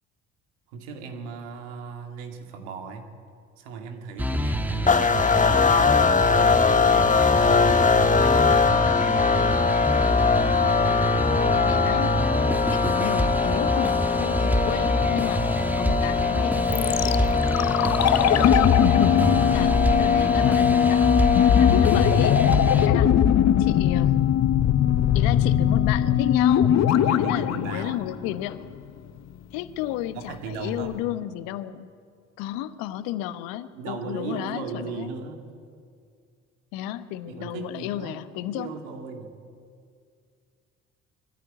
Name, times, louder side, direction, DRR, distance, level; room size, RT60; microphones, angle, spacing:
voice 1, 0.7-3.1 3.6-9.8 12.4-12.8 27.0-28.0 30.1-31.0 33.7-35.5 37.3-38.3 38.5-39.3, right 5 dB, 75° right, 5 dB, 2.4 m, -38 dB
sound 1, 4.2-22.9, right 1 dB, 5° right, 1.7 m, -26 dB
sound 2, 4.9-22.7, left 5 dB, 20° left, 1.2 m, -22 dB
voice 2, 11.5-12.2 12.7-17.4 17.7-17.8 18.1-21.0 21.6-22.4 22.7-23.1 23.6-24.3 25.1-26.8 27.2-28.7 29.5-31.9 32.4-35.1 36.7-38.7, left 13 dB, 70° left, 13 dB, 1.1 m, -33 dB
sound 3, 16.7-28.7 29.0-29.1, left 10 dB, 50° left, 1.0 m, -21 dB
22.5 x 14.5 x 9.4 m, 2.2 s
hypercardioid pair, 55°, 35 cm